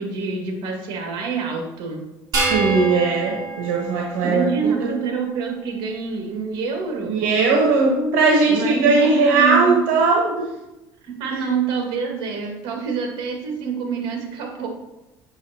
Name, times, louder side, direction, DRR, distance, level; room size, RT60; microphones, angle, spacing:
voice 1, 0.0-2.0 4.2-7.1 8.5-9.8 11.0-14.7, right 5 dB, 65° right, 1 dB, 1.9 m, -26 dB
sound 1, 2.3-4.9, right 3 dB, 45° right, 2.5 m, -26 dB
voice 2, 2.5-4.9 7.1-10.3, right 3 dB, 85° right, -1 dB, 1.1 m, -18 dB
8.0 x 5.9 x 2.8 m, 0.98 s
cardioid pair, 115°, 9 cm